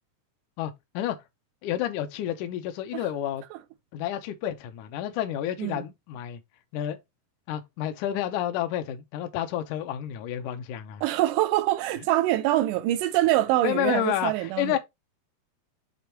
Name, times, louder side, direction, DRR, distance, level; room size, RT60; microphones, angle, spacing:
voice 1, 0.6-1.2 1.6-3.4 3.9-6.4 6.7-7.0 7.5-11.0 13.6-14.8, left 11 dB, 70° left, 2.0 m, -30 dB
voice 2, 11.0-14.8, right 15 dB, 80° right, 2.1 m, -24 dB
6.9 x 3.3 x 4.5 m
omnidirectional pair, 4.2 m